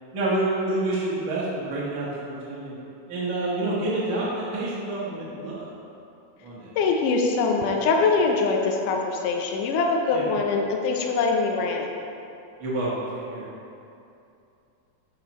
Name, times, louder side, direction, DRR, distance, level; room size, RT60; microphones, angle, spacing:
voice 1, 0.1-2.7 3.1-5.6 6.4-6.7 10.1-10.3 12.6-13.5, right 2 dB, 80° right, -8 dB, 1.1 m, -28 dB
voice 2, 6.8-11.9, left 4 dB, 80° left, 1 dB, 1.9 m, -23 dB
11.0 x 5.7 x 3.0 m, 2.7 s
omnidirectional pair, 4.3 m